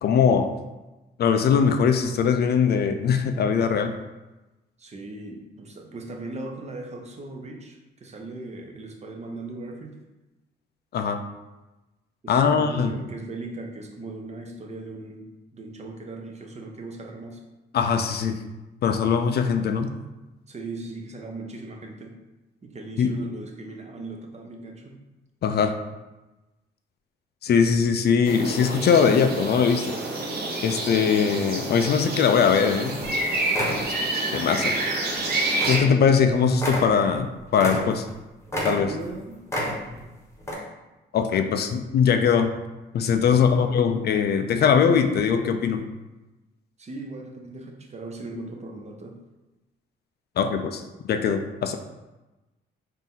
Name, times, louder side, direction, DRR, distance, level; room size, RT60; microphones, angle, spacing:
voice 1, 0.0-0.5 1.2-3.9 10.9-11.2 12.3-13.0 17.7-18.4 18.8-19.9 23.0-23.1 25.4-25.7 27.4-30.0 30.6-33.0 34.3-34.7 35.7-38.1 38.6-38.9 41.1-42.6 42.9-45.9 50.4-51.8, left 6 dB, 55° left, 7 dB, 0.4 m, -21 dB
voice 2, 4.8-10.0 12.2-17.4 20.5-22.1 22.6-25.0 38.9-39.4 43.3-43.9 46.8-49.2, right 2 dB, 35° right, 2 dB, 0.7 m, -38 dB
sound 1, 28.2-35.8, right 2 dB, 50° right, 1.0 m, -28 dB
sound 2, 33.0-33.2 33.5-33.9 34.6-34.8 35.1-35.2 35.6-35.9 36.1-36.2 36.5-38.2 38.5-39.1 39.5-40.1 40.4-40.5, equal, 15° left, 1.1 m, -29 dB
4.1 x 2.7 x 3.7 m, 1.1 s
cardioid pair, 90°, 20 cm